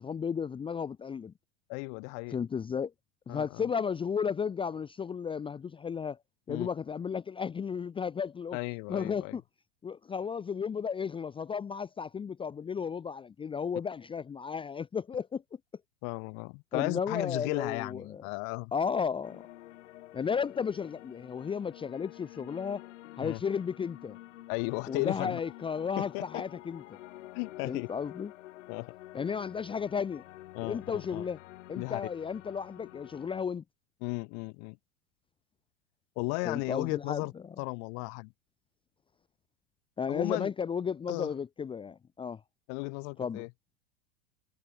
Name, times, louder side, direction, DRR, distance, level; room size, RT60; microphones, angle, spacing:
voice 1, 0.0-1.3 2.3-2.9 3.3-6.2 6.5-8.6 8.9-9.4 9.8-15.4 16.7-18.2 18.7-19.4 20.1-22.8 23.2-24.2 24.9-27.0 27.6-28.3 29.1-30.2 30.6-31.4 31.7-33.6 36.4-37.5 40.0-42.4 43.2-43.4, left 6 dB, 15° left, 0.7 m, -34 dB
voice 2, 1.7-2.4 3.3-3.7 6.5-6.7 8.5-9.4 16.0-18.7 23.2-23.4 24.5-25.4 26.0-26.4 27.3-27.9 28.7-28.9 30.5-31.2 31.7-32.0 34.0-34.8 36.2-37.3 37.6-38.3 40.1-40.5 41.1-41.3 42.7-43.5, left 40 dB or more, 55° left, 2.7 m, -35 dB
sound 1, 19.2-33.4, left 16 dB, 75° left, 2.1 m, -49 dB
hypercardioid pair, 115°, 37 cm